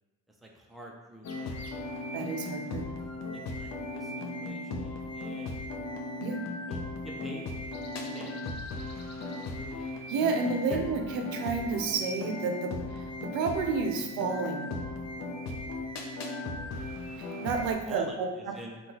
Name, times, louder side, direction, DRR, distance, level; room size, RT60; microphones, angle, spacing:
voice 1, 0.4-2.8 3.3-5.6 6.4-8.5 8.8-8.9 9.3-10.0 10.5-10.8 17.8-18.8, right 1 dB, ahead, -1 dB, 0.5 m, -46 dB
sound 1, 1.2-17.7, left 2 dB, 45° left, 0.6 m, -37 dB
voice 2, 2.1-2.9 6.2-6.4 10.1-14.7 17.2-18.0, right 4 dB, 75° right, 4 dB, 0.6 m, -31 dB
3.7 x 2.3 x 2.8 m, 1.1 s
cardioid pair, 85°, 36 cm